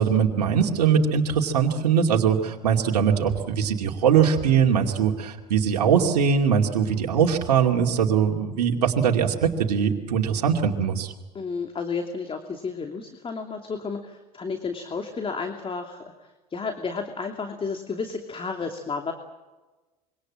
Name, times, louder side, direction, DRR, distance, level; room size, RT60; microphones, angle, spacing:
voice 1, 0.0-11.1, right 7 dB, 80° right, 1 dB, 2.6 m, -21 dB
voice 2, 11.3-16.0 16.5-19.1, left 4 dB, 25° left, 5 dB, 2.9 m, -32 dB
26.0 x 24.5 x 7.7 m, 1.2 s
hypercardioid pair, 70°, 20 cm